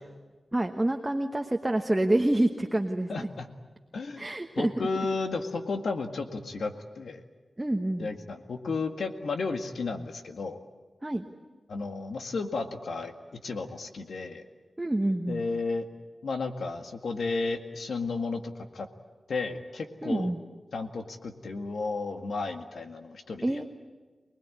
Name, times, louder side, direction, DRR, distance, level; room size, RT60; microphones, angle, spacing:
voice 1, 0.5-3.3 4.2-4.9 7.6-8.1 11.0-11.3 14.8-15.4 20.0-20.4 23.4-23.6, right 1 dB, 15° right, 4 dB, 1.1 m, -27 dB
voice 2, 3.1-3.5 3.9-4.3 4.6-7.2 8.0-10.6 11.7-13.1 13.4-14.4 15.3-15.9 16.2-18.9 19.3-20.3 20.7-23.6, left 3 dB, 90° left, 6 dB, 1.9 m, -33 dB
25.0 x 20.0 x 9.9 m, 1.3 s
wide cardioid pair, 140°, 0 cm